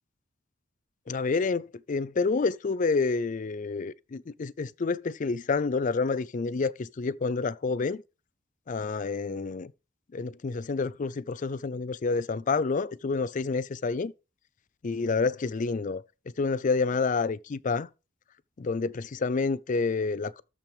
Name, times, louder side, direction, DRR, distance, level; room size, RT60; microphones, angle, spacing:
voice 1, 1.1-8.0 8.7-9.7 10.1-14.1 14.8-16.0 16.4-17.9 18.6-20.4, left 4 dB, 40° left, 0.4 m, -28 dB
13.0 x 5.8 x 3.5 m
head